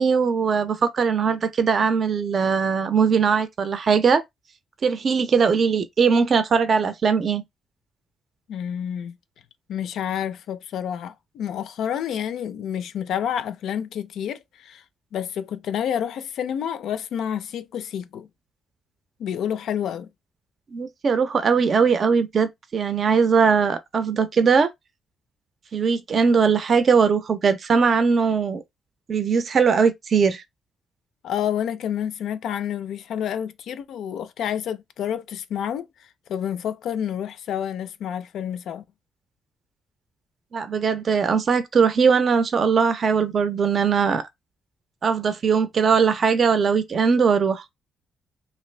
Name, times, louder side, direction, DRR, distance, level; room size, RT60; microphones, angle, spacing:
voice 1, 0.0-4.2 4.8-7.4 20.7-24.7 25.7-28.6 29.1-30.4 40.5-44.2 45.0-47.6, right 5 dB, 50° right, 0.5 m, -20 dB
voice 2, 8.5-9.2 9.7-14.8 15.1-18.3 19.2-20.1 31.2-35.9 36.3-38.8, left 9 dB, 75° left, 0.3 m, -29 dB
2.6 x 2.5 x 3.2 m
cardioid pair, 90°, 0 cm